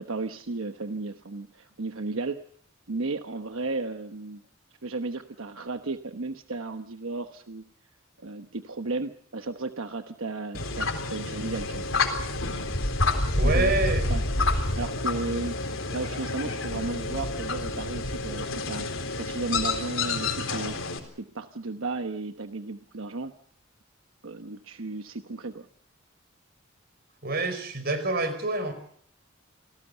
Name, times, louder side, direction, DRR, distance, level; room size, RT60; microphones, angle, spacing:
voice 1, 0.0-2.4 2.9-4.4 4.8-7.6 8.2-11.9 13.4-13.7 14.1-14.2 14.7-15.6 15.9-18.9 19.2-20.8 21.2-23.3 24.2-25.7, right 3 dB, 85° right, 7 dB, 1.1 m, -34 dB
sound 1, 10.5-21.0, left 2 dB, 75° left, 3.9 m, -28 dB
voice 2, 13.4-14.1 27.2-28.7, right 2 dB, 50° right, 10 dB, 5.0 m, -27 dB
28.0 x 18.5 x 6.8 m, 0.62 s
head